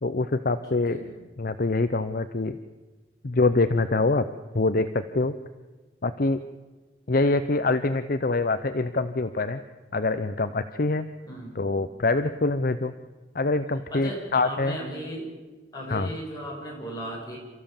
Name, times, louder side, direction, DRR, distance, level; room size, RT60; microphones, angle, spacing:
voice 1, 0.0-1.0 1.4-2.6 3.2-4.3 4.5-5.3 6.0-6.4 7.1-9.6 9.9-11.1 11.5-12.9 13.3-14.8 15.9-16.1, left 3 dB, 50° left, 11 dB, 0.7 m, -25 dB
voice 2, 0.9-1.2 11.3-11.7 13.9-15.3 15.7-17.4, equal, 20° left, -2 dB, 6.7 m, -36 dB
28.5 x 14.5 x 7.2 m, 1.3 s
head